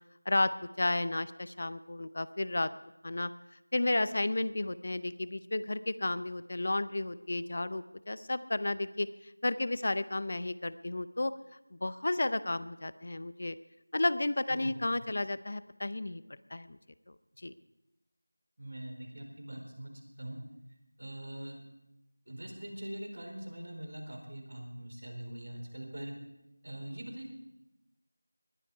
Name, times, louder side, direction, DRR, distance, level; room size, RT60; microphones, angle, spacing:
voice 1, 0.3-2.7 3.0-3.3 3.7-9.1 9.4-11.3 11.7-13.6 13.9-16.2 16.5-16.8 17.4-17.5, left 2 dB, 40° left, 15 dB, 0.6 m, -32 dB
voice 2, 14.5-14.8 18.6-19.9 20.2-20.4 21.0-21.6 22.3-26.1 26.6-27.3, right 1 dB, 65° right, 3 dB, 4.2 m, -43 dB
20.0 x 11.0 x 4.8 m, 0.91 s
figure-of-eight pair, 175°, 0 cm